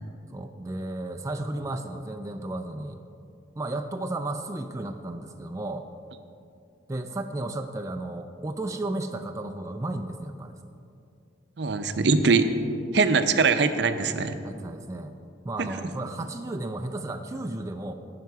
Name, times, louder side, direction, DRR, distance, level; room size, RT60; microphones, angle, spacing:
voice 1, 0.3-3.0 3.5-5.9 6.9-10.6 14.4-15.1 15.4-17.9, right 2 dB, 15° right, 6 dB, 0.4 m, -33 dB
voice 2, 11.6-12.5 12.9-14.4 15.6-15.7, right 4 dB, 65° right, 9 dB, 0.6 m, -22 dB
17.5 x 5.8 x 4.7 m, 2.5 s
head